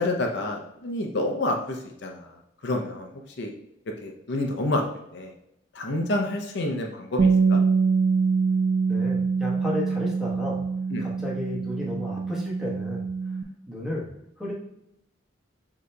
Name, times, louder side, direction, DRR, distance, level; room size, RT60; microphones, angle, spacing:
voice 1, 0.0-3.5 4.0-4.8 5.1-5.3 5.7-7.6 10.9-11.0, left 2 dB, 65° left, 2 dB, 0.6 m, -29 dB
Bass guitar, 7.2-13.4, right 5 dB, 50° right, 0.3 m, -24 dB
voice 2, 8.9-10.6 11.0-13.1 13.7-14.1 14.4-14.5, left 1 dB, 5° right, -5 dB, 1.2 m, -32 dB
6.4 x 2.9 x 2.2 m, 0.80 s
head